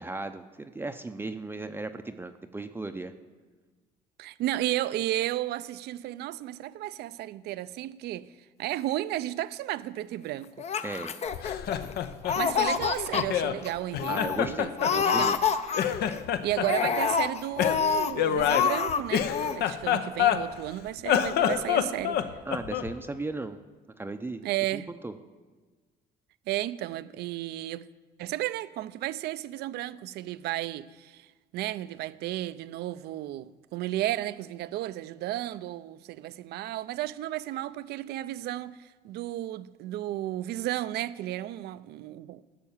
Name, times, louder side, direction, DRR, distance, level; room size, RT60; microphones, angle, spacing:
voice 1, 0.0-3.1 10.8-11.1 14.1-15.4 22.5-23.6 24.0-24.4 24.7-25.1, right 2 dB, 15° right, 0.5 m, -36 dB
voice 2, 4.2-8.3 8.6-10.6 12.4-15.4 16.4-22.2 24.4-24.9 26.5-27.9 28.2-31.3 31.5-42.4, right 14 dB, 75° right, 0.5 m, -33 dB
Laughter, 10.6-11.9 12.2-13.2 13.6-13.7 14.0-14.4 14.8-16.1 16.6-18.1 18.4-19.0 19.3-19.6, left 7 dB, 40° left, 0.7 m, -27 dB
Laughter 2, 11.3-13.6 13.9-15.5 15.7-16.9 17.6-20.7 21.0-22.9, left 9 dB, 70° left, 0.8 m, -27 dB
13.5 x 6.6 x 7.2 m
cardioid pair, 110°, 17 cm